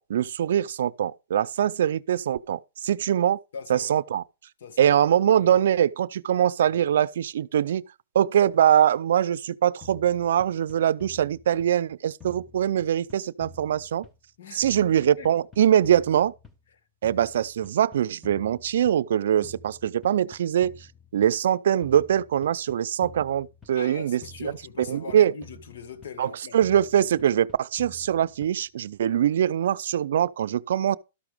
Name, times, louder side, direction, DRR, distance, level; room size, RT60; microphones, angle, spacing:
voice 1, 0.0-3.4 3.7-4.2 4.8-7.8 8.1-14.0 14.5-16.3 17.0-20.7 21.1-24.2 24.9-25.3 26.2-31.0, right 10 dB, 70° right, 0.5 m, -23 dB
voice 2, 3.5-4.0 4.6-5.0 5.3-5.6 14.4-14.9 15.2-15.3 23.8-26.6, left 5 dB, 70° left, 1.7 m, -41 dB
sound 1, 9.8-11.9 12.2-14.4 14.6-16.7 17.0-19.1 19.4-21.4 21.8-23.9 24.2-26.3 26.6-28.7, left 3 dB, 10° left, 1.1 m, -50 dB
13.0 x 5.9 x 5.0 m
hypercardioid pair, 160°, 0 cm